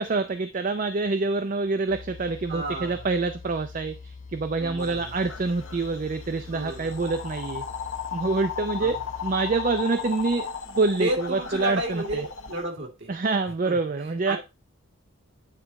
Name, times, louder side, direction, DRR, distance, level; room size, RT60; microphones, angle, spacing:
voice 1, 0.0-7.6 8.1-9.0 9.2-12.2 13.1-14.4, right 3 dB, 40° right, 0.4 m, -26 dB
sound 1, 1.9-9.8, left 4 dB, 35° left, 0.4 m, -44 dB
voice 2, 2.5-3.1 4.6-5.1 6.5-7.1 8.8-9.0 11.0-13.1 13.6-13.8 14.3-14.4, right 1 dB, 55° right, 1.9 m, -31 dB
sound 2, 4.8-12.7, left 7 dB, 65° left, 0.9 m, -36 dB
9.0 x 3.5 x 3.9 m
head